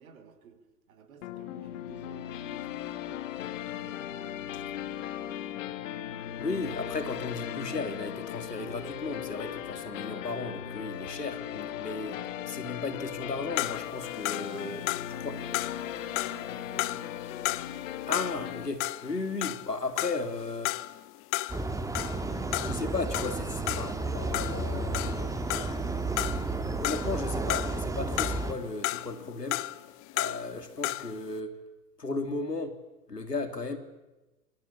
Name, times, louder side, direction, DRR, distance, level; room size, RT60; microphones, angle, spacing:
voice 1, 0.0-3.3 3.7-4.0 14.4-17.2, right 6 dB, 60° right, 8 dB, 5.6 m, -54 dB
sound 1, 1.2-18.7, left 11 dB, 55° left, 2.4 m, -38 dB
voice 2, 6.4-12.2 12.4-14.9 15.2-15.4 18.1-20.8 22.6-29.6 30.1-31.6 32.0-32.8 33.1-33.8, left 3 dB, 85° left, 8 dB, 3.6 m, -35 dB
sound 2, 13.6-18.5 18.8-25.9 26.2-27.9 28.2-31.2, left 20 dB, 25° left, 0.9 m, -34 dB
sound 3, 21.5-28.5, right 3 dB, 5° right, 1.9 m, -32 dB
26.5 x 23.5 x 8.7 m, 1.1 s
figure-of-eight pair, 105°, 47 cm